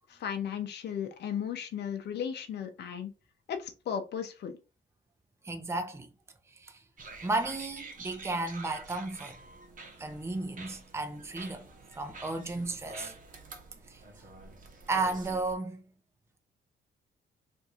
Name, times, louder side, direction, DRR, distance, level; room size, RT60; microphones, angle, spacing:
voice 1, 0.1-3.1 3.5-4.5, left 8 dB, 60° left, 0.6 m, -35 dB
voice 2, 5.4-6.1 6.5-6.8 7.2-9.4 10.0-11.7 12.0-13.1 13.9-14.0 14.9-15.8, right 2 dB, 15° right, 0.6 m, -33 dB
sound 1, 7.0-15.6, right 3 dB, 40° right, 0.9 m, -48 dB
2.8 x 2.6 x 3.6 m
cardioid pair, 90°, 20 cm